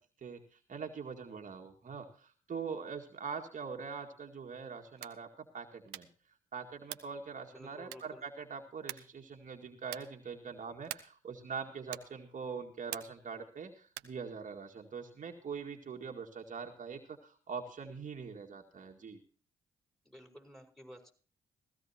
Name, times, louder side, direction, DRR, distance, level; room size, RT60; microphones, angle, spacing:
voice 1, 0.2-6.1 6.5-19.2, right 5 dB, 50° right, 3 dB, 2.0 m, -43 dB
sound 1, 4.9-5.3 5.9-6.2 6.8-7.2 7.9-8.3 8.9-9.2 9.8-10.2 10.8-11.2 11.9-12.2 12.9-13.3 13.9-14.2, right 17 dB, 85° right, 0.9 m, -45 dB
voice 2, 7.5-8.2 20.0-21.1, equal, ahead, 5 dB, 5.1 m, -53 dB
16.5 x 15.5 x 2.9 m, 0.41 s
hypercardioid pair, 50°, 17 cm